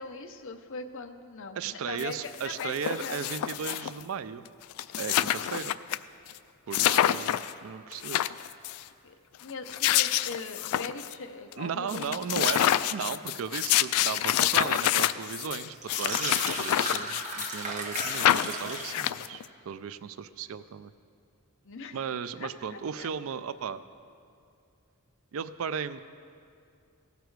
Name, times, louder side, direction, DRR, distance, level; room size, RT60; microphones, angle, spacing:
voice 1, 0.0-3.2 9.0-9.1 9.4-12.9 21.6-22.0 22.4-23.1, left 4 dB, 60° left, 7 dB, 0.7 m, -40 dB
voice 2, 1.6-4.5 5.0-5.8 6.7-8.2 11.6-20.9 21.9-23.8 25.3-26.0, right 7 dB, 65° right, 13 dB, 0.4 m, -36 dB
sound 1, 2.0-2.1 2.3-4.0 4.5-4.6 4.7-6.0 6.3-6.4 6.7-7.5 7.9-8.8 9.5-11.1 11.5-11.6 11.9-17.6 17.9-19.5, left 12 dB, 85° left, 0.3 m, -27 dB
sound 2, 15.7-19.0, right 2 dB, 35° right, 1.5 m, -35 dB
16.5 x 6.8 x 4.6 m, 2.4 s
head